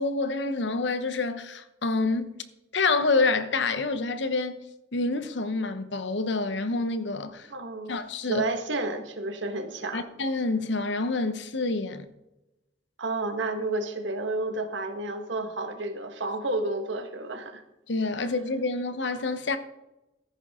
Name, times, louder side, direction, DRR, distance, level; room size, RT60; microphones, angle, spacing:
voice 1, 0.0-2.4 2.7-4.6 4.9-7.5 7.9-8.5 9.9-12.1 17.9-19.6, left 3 dB, 70° left, 0.9 m, -27 dB
voice 2, 7.5-10.0 13.0-17.6, right 2 dB, 80° right, 1.5 m, -31 dB
14.0 x 10.5 x 3.7 m
head